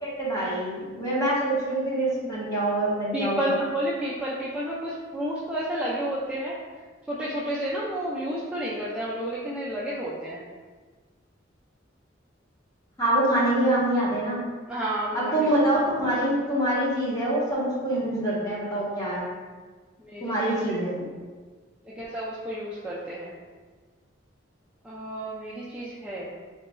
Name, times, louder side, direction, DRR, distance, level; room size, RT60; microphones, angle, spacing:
voice 1, 0.0-3.6 13.0-14.4 15.1-19.3 20.2-21.0, right 1 dB, 20° left, -8 dB, 1.1 m, -25 dB
voice 2, 3.1-6.6 7.1-10.4 14.7-15.5 20.0-20.8 21.8-23.3 24.8-26.3, right 1 dB, 5° right, -9 dB, 0.4 m, -31 dB
3.9 x 3.1 x 2.2 m, 1.4 s
head